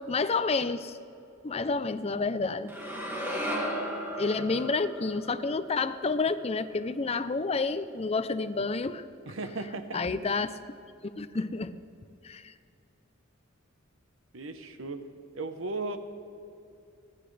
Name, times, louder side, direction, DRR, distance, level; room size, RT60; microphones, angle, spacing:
voice 1, 0.1-1.0 1.4-2.7 4.2-9.0 9.9-10.5 11.0-11.7 12.2-12.5, left 4 dB, 30° left, 12 dB, 0.5 m, -29 dB
sound 1, 2.7-6.9, equal, 10° right, 2.0 m, -36 dB
voice 2, 9.3-10.0 14.3-15.0 15.3-16.0, right 3 dB, 75° right, 8 dB, 1.0 m, -36 dB
29.5 x 9.9 x 3.3 m, 2.6 s
head